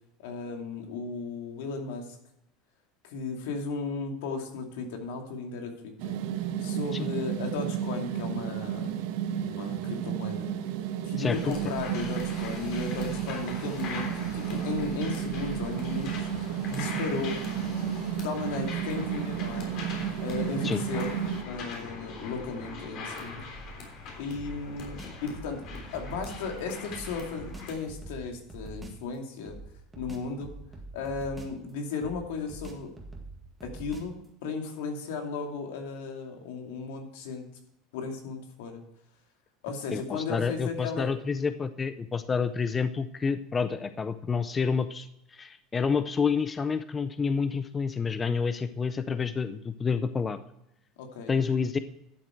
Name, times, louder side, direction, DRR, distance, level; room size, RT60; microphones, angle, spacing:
voice 1, 0.2-2.2 3.0-6.2 6.6-9.0 9.3-10.5 11.1-17.4 18.2-19.7 20.2-21.2 21.4-23.4 24.2-29.6 30.0-30.5 30.9-32.9 33.6-37.5 37.9-38.8 39.6-41.1 51.0-51.3, left 4 dB, 85° left, 3 dB, 2.5 m, -35 dB
sound 1, 6.0-21.4, right 9 dB, 75° right, 1.3 m, -32 dB
voice 2, 11.2-11.5 20.6-20.8 39.9-50.4 51.3-51.8, left 5 dB, 20° left, 12 dB, 0.5 m, -29 dB
sound 2, 11.3-27.7, left 3 dB, 50° left, 3.5 m, -41 dB
sound 3, 24.4-26.5 26.9-29.0 29.5-31.7 32.0-34.3, right 2 dB, 10° right, 1.9 m, -44 dB
12.0 x 7.6 x 4.5 m, 0.82 s
supercardioid pair, 145°, 0 cm